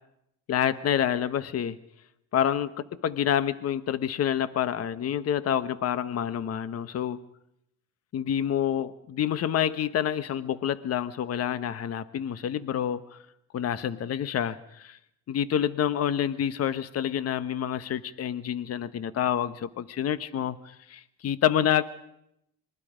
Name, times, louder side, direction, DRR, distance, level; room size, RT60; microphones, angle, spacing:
voice 1, 0.5-1.8 2.3-7.2 8.1-13.2 13.5-15.0 15.3-21.8, left 9 dB, 45° left, 13 dB, 1.1 m, -28 dB
27.0 x 22.5 x 5.1 m, 0.79 s
supercardioid pair, 95°, 34 cm